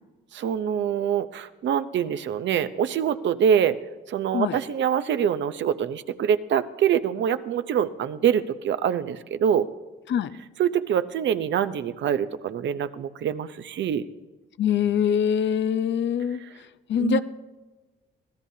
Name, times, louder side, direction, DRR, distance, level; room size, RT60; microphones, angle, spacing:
voice 1, 0.3-3.8 4.1-9.7 10.6-14.0 17.0-17.2, right 8 dB, 65° right, 12 dB, 0.8 m, -25 dB
voice 2, 14.6-17.2, left 8 dB, 65° left, 13 dB, 0.7 m, -24 dB
25.0 x 16.5 x 2.8 m, 1.2 s
cardioid pair, 90°, 20 cm